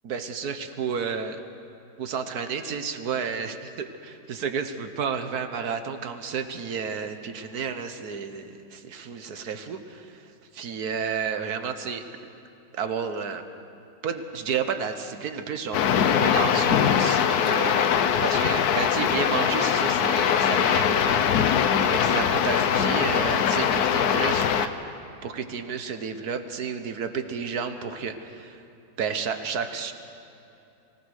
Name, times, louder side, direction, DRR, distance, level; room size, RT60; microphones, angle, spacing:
voice 1, 0.0-1.4 2.0-10.2 10.5-12.1 12.7-13.4 14.0-17.9 18.2-21.3 21.8-24.7 25.2-28.6 29.0-29.9, right 6 dB, 60° right, 8 dB, 1.5 m, -31 dB
sound 1, 15.7-24.7, left 8 dB, 65° left, 1.2 m, -22 dB
24.5 x 18.0 x 6.5 m, 2.8 s
omnidirectional pair, 1.9 m